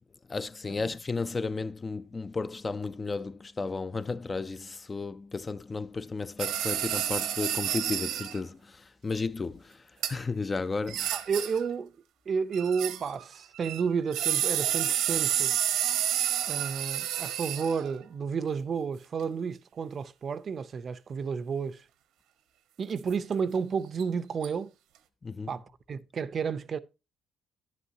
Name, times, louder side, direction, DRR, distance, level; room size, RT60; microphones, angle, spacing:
voice 1, 0.3-9.8 10.1-11.1 25.2-25.5, left 4 dB, 25° left, 0.3 m, -33 dB
sound 1, 6.4-8.4 10.0-10.1 10.9-11.7 12.5-13.2 13.6-17.9 24.0-24.1 24.4-24.5, right 11 dB, 90° right, 1.0 m, -30 dB
voice 2, 11.1-11.9 12.3-15.5 16.5-21.8 22.8-24.7 25.5-25.6 25.9-26.8, right 6 dB, 40° right, 0.5 m, -31 dB
10.5 x 8.2 x 2.7 m
cardioid pair, 120°, 0 cm